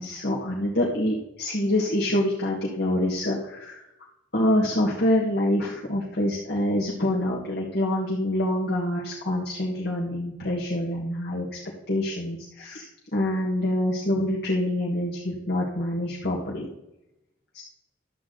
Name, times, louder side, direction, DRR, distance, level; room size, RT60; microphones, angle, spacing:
voice 1, 0.0-3.8 4.3-11.5 11.9-16.7 17.5-17.6, left 1 dB, 55° left, -3 dB, 1.7 m, -26 dB
12.0 x 8.4 x 3.9 m, 0.88 s
head